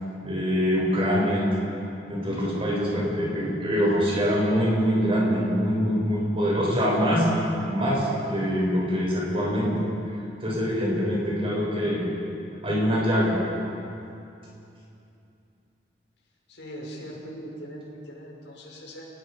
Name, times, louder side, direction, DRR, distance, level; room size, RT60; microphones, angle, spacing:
voice 1, 0.2-1.5 2.1-7.4 7.7-9.7 10.4-12.0 12.6-13.4, equal, 30° right, -4 dB, 7.2 m, -24 dB
voice 2, 16.5-19.1, equal, 90° left, -3 dB, 6.2 m, -40 dB
29.5 x 19.5 x 5.5 m, 2.7 s
head